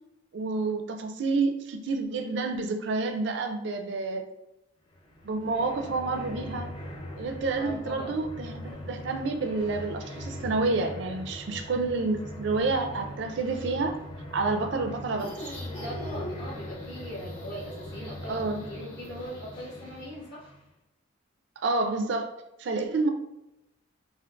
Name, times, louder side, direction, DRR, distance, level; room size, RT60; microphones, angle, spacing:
voice 1, 0.3-4.3 5.2-6.7 7.2-14.0 14.3-15.3 18.3-18.6 21.6-23.1, right 3 dB, 60° right, 5 dB, 0.4 m, -29 dB
sound 1, 4.9-20.7, equal, 25° left, 0.4 m, -41 dB
voice 2, 7.6-8.2 15.8-20.5, equal, 55° left, -7 dB, 1.5 m, -40 dB
sound 2, 15.2-20.1, equal, 90° left, 1.4 m, -44 dB
3.7 x 2.4 x 2.3 m, 0.88 s
head